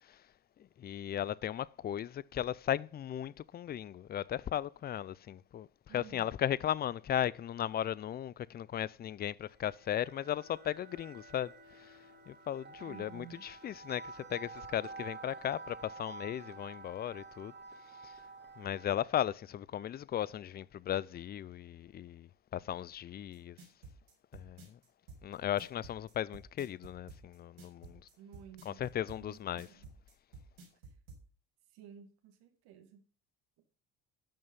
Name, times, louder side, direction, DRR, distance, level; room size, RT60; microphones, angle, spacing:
voice 1, 0.8-5.7 5.9-12.0 12.3-17.5 18.0-18.1 18.6-23.6 24.3-24.8 25.2-28.0 28.7-29.7, left 11 dB, 25° left, 0.3 m, -36 dB
voice 2, 5.9-6.3 12.8-13.5 28.2-28.8 29.2-29.9 31.7-33.0, right 9 dB, 70° right, 2.2 m, -54 dB
sound 1, 9.6-19.1, right 4 dB, 25° right, 2.6 m, -50 dB
sound 2, 23.3-31.2, right 3 dB, 90° right, 4.9 m, -52 dB
12.5 x 5.5 x 5.4 m
hypercardioid pair, 70°, 41 cm